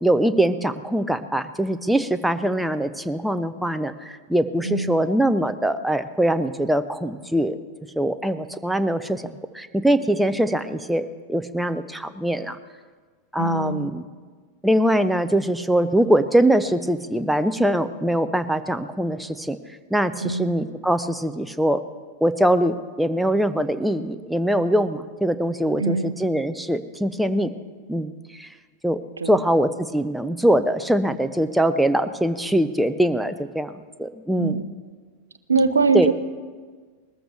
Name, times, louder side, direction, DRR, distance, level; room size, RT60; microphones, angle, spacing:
voice 1, 0.0-7.6 7.9-12.6 13.3-14.0 14.6-19.6 19.9-21.8 22.2-27.5 27.9-28.5 28.8-29.0 29.3-33.7 34.0-34.6 35.9-36.1, right 1 dB, 5° right, 11 dB, 0.5 m, -22 dB
voice 2, 4.6-5.0 13.4-14.0 20.2-20.5 25.8-26.2 29.2-29.4 34.4-34.7 35.5-36.1, right 4 dB, 75° right, 13 dB, 0.6 m, -23 dB
19.5 x 14.0 x 3.3 m, 1.5 s
figure-of-eight pair, 90°, 0 cm